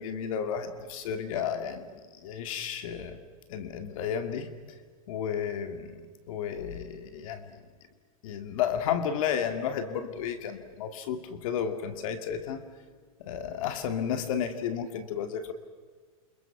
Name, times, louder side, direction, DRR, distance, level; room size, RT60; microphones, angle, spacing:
voice 1, 0.0-1.9 2.2-3.2 3.5-4.5 5.1-7.6 8.2-12.6 13.2-15.5, left 8 dB, 65° left, 8 dB, 2.5 m, -32 dB
28.5 x 28.0 x 6.1 m, 1.5 s
supercardioid pair, 140°, 19 cm